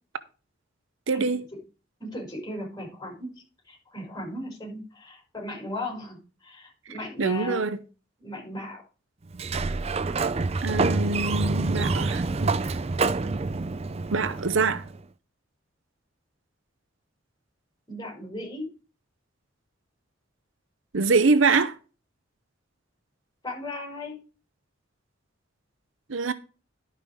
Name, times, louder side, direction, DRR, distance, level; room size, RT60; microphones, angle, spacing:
voice 1, 1.1-1.4 7.2-7.8 10.6-12.6 14.1-14.8 20.9-21.7 26.1-26.3, right 4 dB, 80° right, 0.8 m, -24 dB
voice 2, 2.0-3.3 3.6-7.6 8.2-8.8 17.9-18.7 23.4-24.2, left 1 dB, 20° left, 5.7 m, -36 dB
Sliding door, 9.3-15.0, right 3 dB, 30° right, 0.4 m, -27 dB
11.5 x 5.7 x 5.0 m
head